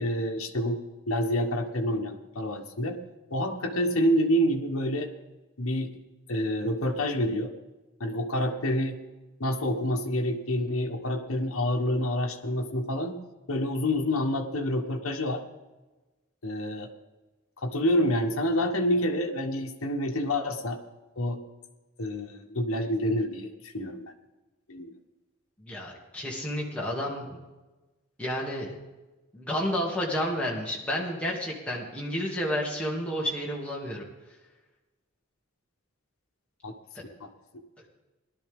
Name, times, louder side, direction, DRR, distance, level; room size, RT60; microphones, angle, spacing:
voice 1, 0.0-3.0 3.3-5.1 5.6-5.9 6.3-7.5 8.0-8.9 9.4-13.2 13.5-15.4 16.4-16.9 17.6-20.8 21.2-21.4 22.0-24.1 24.7-24.9 36.6-36.7 37.2-37.3, equal, 75° left, 2 dB, 1.2 m, -28 dB
voice 2, 25.6-27.4 28.2-28.7 29.3-34.0, equal, 5° left, -4 dB, 2.3 m, -31 dB
18.5 x 12.0 x 3.6 m, 1.1 s
head